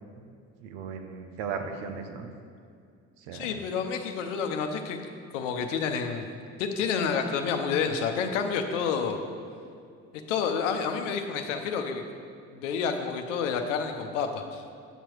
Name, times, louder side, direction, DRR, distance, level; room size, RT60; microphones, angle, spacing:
voice 1, 0.6-2.3 3.2-3.5, right 6 dB, 80° right, 5 dB, 0.9 m, -36 dB
voice 2, 3.3-5.0 5.3-6.3 6.6-9.2 10.3-12.0 12.5-14.6, left 6 dB, 85° left, 5 dB, 0.8 m, -29 dB
9.0 x 6.3 x 4.5 m, 2.3 s
hypercardioid pair, 55°, 36 cm